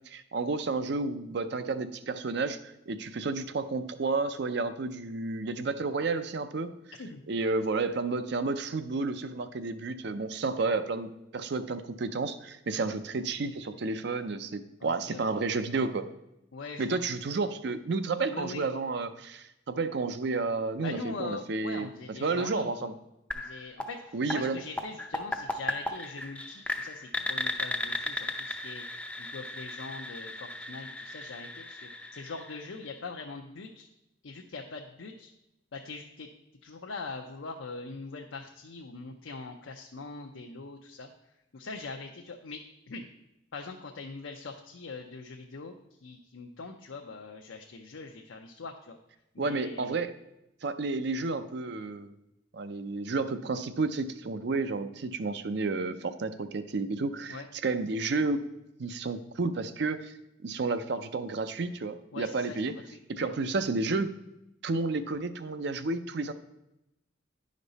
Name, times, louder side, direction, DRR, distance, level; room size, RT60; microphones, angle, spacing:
voice 1, 0.1-6.7 7.3-16.0 16.8-21.9 22.2-22.9 24.1-24.6 49.4-50.1 50.6-52.1 52.5-58.4 58.8-60.1 60.4-62.7 63.1-64.1 64.6-66.3, right 3 dB, 60° right, 11 dB, 0.5 m, -31 dB
voice 2, 14.8-15.4 16.5-17.0 18.3-18.7 20.8-22.9 23.3-33.9 34.2-35.3 35.7-36.3 36.6-41.1 41.5-42.6 42.9-43.1 43.5-49.0 49.3-50.0 57.3-57.5 62.1-63.3, left 3 dB, 80° left, 2 dB, 0.6 m, -42 dB
sound 1, 23.3-33.1, left 1 dB, 5° left, 0.4 m, -36 dB
10.0 x 5.2 x 4.0 m, 0.87 s
head